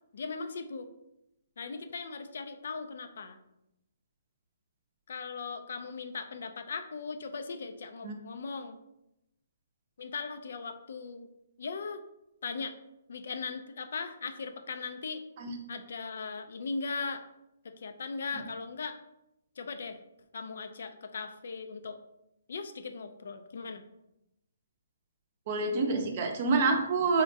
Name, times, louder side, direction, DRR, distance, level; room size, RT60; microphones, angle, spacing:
voice 1, 0.1-0.9 1.6-3.4 5.1-8.8 10.0-11.3 11.6-12.0 12.4-12.7 13.1-15.2 15.7-17.2 17.6-19.0 19.6-20.0 20.3-22.0 22.5-23.8, left 4 dB, 65° left, 8 dB, 0.3 m, -38 dB
voice 2, 25.5-27.2, right 4 dB, 45° right, 4 dB, 0.5 m, -27 dB
3.5 x 2.1 x 2.7 m, 0.86 s
hypercardioid pair, 145°, 0 cm